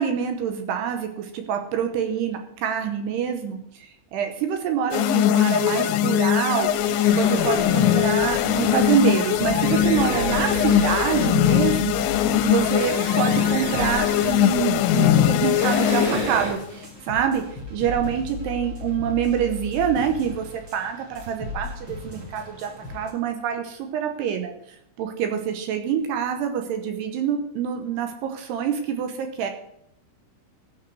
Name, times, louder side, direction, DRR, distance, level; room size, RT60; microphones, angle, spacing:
voice 1, 0.0-6.7 7.2-24.5 25.0-29.5, right 8 dB, 75° right, 6 dB, 2.5 m, -26 dB
sound 1, 4.9-16.5, left 11 dB, 85° left, 2.8 m, -21 dB
sound 2, 6.6-16.5, right 2 dB, 55° right, 4.3 m, -33 dB
sound 3, 7.6-23.1, left 3 dB, 35° right, 2.1 m, -37 dB
15.0 x 6.5 x 6.2 m, 0.75 s
omnidirectional pair, 5.9 m